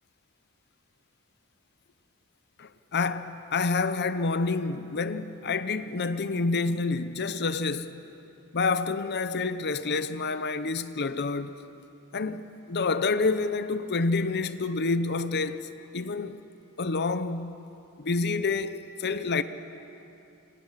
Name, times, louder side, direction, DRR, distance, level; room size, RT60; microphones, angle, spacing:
voice 1, 2.6-8.0 8.5-11.5 12.1-16.4 16.8-17.6 18.0-19.4, left 3 dB, 50° left, 0.8 m, -28 dB
28.5 x 26.5 x 5.8 m
head